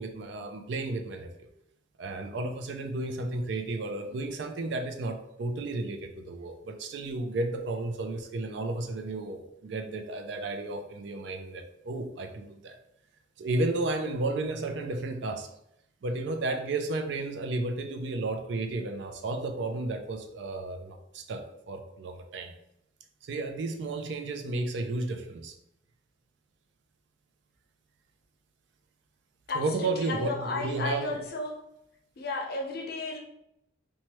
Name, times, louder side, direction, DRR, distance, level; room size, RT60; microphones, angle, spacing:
voice 1, 0.0-1.5 2.0-12.8 13.4-15.5 16.0-22.5 23.2-25.5 29.5-31.2, right 2 dB, 65° right, 5 dB, 0.4 m, -33 dB
voice 2, 29.5-31.5 32.2-33.2, left 3 dB, 50° left, 1 dB, 0.6 m, -33 dB
3.0 x 2.2 x 2.9 m, 0.79 s
head